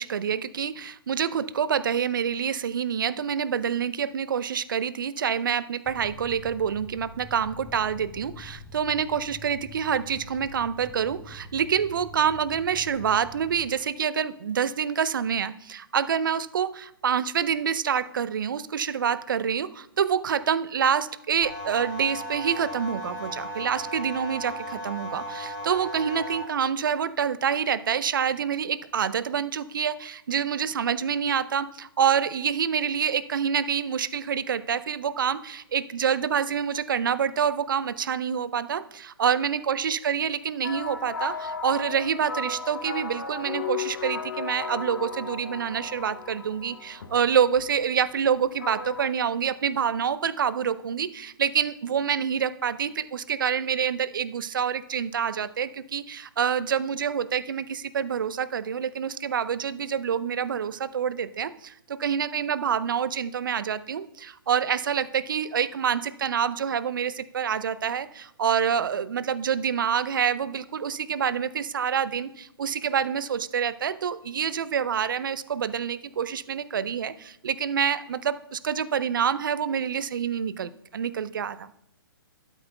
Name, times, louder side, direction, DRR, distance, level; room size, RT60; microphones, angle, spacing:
voice 1, 0.0-81.7, right 7 dB, 60° right, 15 dB, 0.6 m, -27 dB
sound 1, 5.9-13.7, equal, ahead, 0.8 m, -45 dB
sound 2, 21.4-26.4, equal, 25° left, 1.4 m, -36 dB
sound 3, 40.6-49.1, left 5 dB, 65° left, 1.0 m, -35 dB
12.5 x 8.2 x 2.3 m, 0.77 s
figure-of-eight pair, 130°, 12 cm